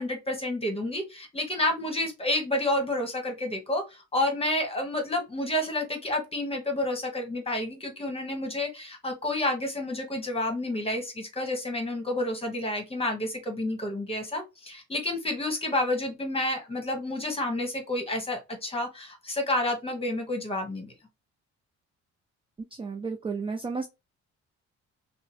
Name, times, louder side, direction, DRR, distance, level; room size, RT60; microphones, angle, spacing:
voice 1, 0.0-20.9, left 1 dB, 20° left, 1.2 m, -30 dB
voice 2, 22.7-23.9, right 4 dB, 20° right, 0.3 m, -32 dB
2.7 x 2.1 x 2.9 m
cardioid pair, 90°, 30 cm